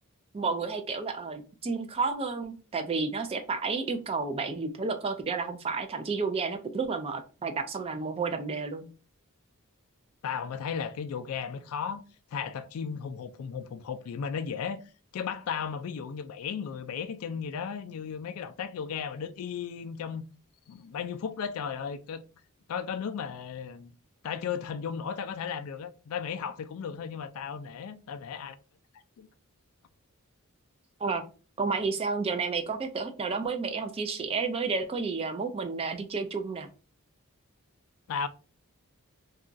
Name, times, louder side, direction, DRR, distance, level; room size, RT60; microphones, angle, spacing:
voice 1, 0.3-8.9 31.0-31.2 31.6-36.7, right 4 dB, 25° right, 0.3 m, -31 dB
voice 2, 10.2-12.0 12.3-14.8 15.1-20.2 20.7-22.2 22.7-23.9 24.2-28.6 29.2-29.3 38.1-38.3, left 7 dB, 70° left, 0.3 m, -35 dB
2.9 x 2.3 x 2.5 m
head